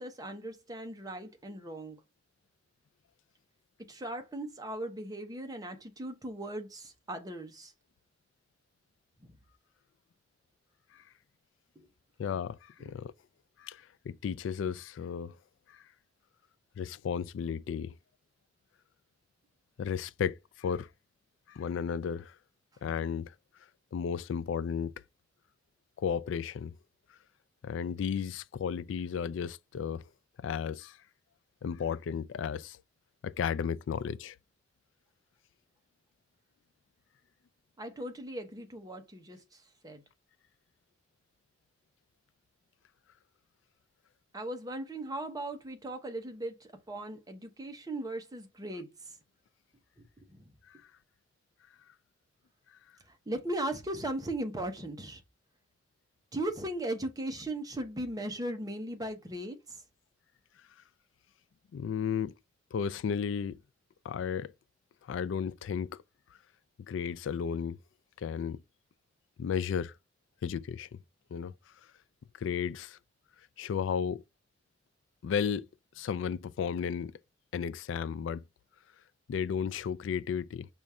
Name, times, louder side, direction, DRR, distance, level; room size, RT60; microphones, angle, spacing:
voice 1, 0.0-2.0 3.9-7.7 9.2-9.4 11.7-11.9 12.8-12.9 37.8-40.0 44.3-49.2 50.0-50.5 53.1-55.2 56.3-59.8, right 1 dB, 20° right, 0.9 m, -38 dB
voice 2, 12.2-13.1 13.6-15.4 15.7-15.8 16.8-18.0 19.8-20.9 21.5-22.4 22.8-23.3 23.9-24.9 26.0-26.7 27.6-30.1 30.4-31.0 31.6-32.8 33.2-34.4 50.7-50.8 61.7-62.3 62.7-63.6 64.0-64.5 65.0-66.0 66.9-67.8 68.2-68.6 69.4-69.9 70.4-71.0 71.3-71.5 72.4-73.0 73.6-74.2 75.2-75.7 76.0-77.1 77.5-78.4 79.3-80.7, left 7 dB, 85° left, 0.3 m, -34 dB
5.1 x 2.4 x 4.1 m
head